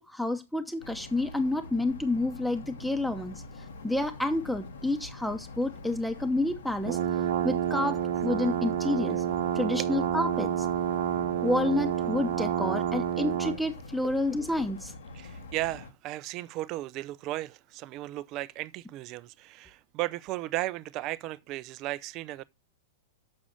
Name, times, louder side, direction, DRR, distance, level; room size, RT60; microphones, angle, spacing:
voice 1, 0.0-3.4 3.8-7.0 7.4-8.0 8.2-9.2 9.5-10.7 11.4-14.9, left 2 dB, ahead, 0.9 m, -29 dB
sound 1, 0.8-15.9, left 3 dB, 70° left, 1.5 m, -45 dB
sound 2, 6.9-13.6, right 10 dB, 55° right, 0.9 m, -29 dB
voice 2, 15.1-22.4, right 17 dB, 40° right, 0.5 m, -35 dB
7.4 x 6.1 x 6.5 m
figure-of-eight pair, 100°, 0 cm